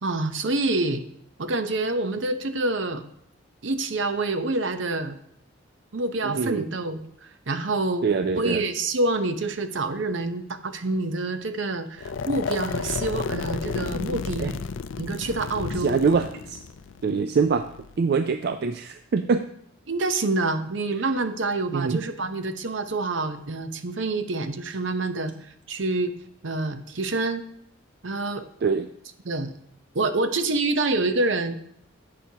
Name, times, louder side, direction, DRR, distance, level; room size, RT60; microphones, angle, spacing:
voice 1, 0.0-1.0 1.4-3.1 3.6-5.1 5.9-8.1 8.3-14.5 15.0-16.0 19.9-25.3 25.7-26.1 26.4-27.4 28.0-28.5 29.2-29.5 29.9-31.6, right 2 dB, 70° right, 9 dB, 0.8 m, -27 dB
voice 2, 6.2-6.7 8.0-8.6 14.4-14.5 15.8-16.6 17.0-17.7 18.0-19.4 21.7-22.0 28.6-28.9, right 5 dB, 55° right, 9 dB, 0.4 m, -24 dB
sound 1, 12.0-18.0, left 5 dB, 80° left, 0.4 m, -32 dB
11.0 x 7.6 x 2.8 m, 0.70 s
head